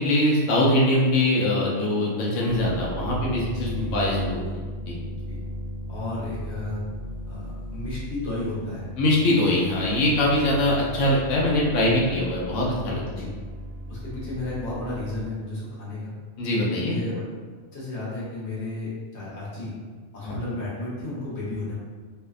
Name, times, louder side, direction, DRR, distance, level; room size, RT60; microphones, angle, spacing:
voice 1, 0.0-4.4 4.9-5.0 9.0-13.2 16.4-17.0 20.2-20.4, left 1 dB, 80° left, -4 dB, 1.0 m, -22 dB
sound 1, 2.5-15.3, equal, 60° right, 0.7 m, -36 dB
voice 2, 3.4-4.2 4.5-4.6 5.1-5.4 5.9-6.8 7.3-8.9 13.1-13.3 13.9-16.1 16.8-17.2 17.7-19.7 20.1-21.8, left 2 dB, 65° left, -7 dB, 1.1 m, -33 dB
2.6 x 2.1 x 2.4 m, 1.5 s
omnidirectional pair, 1.3 m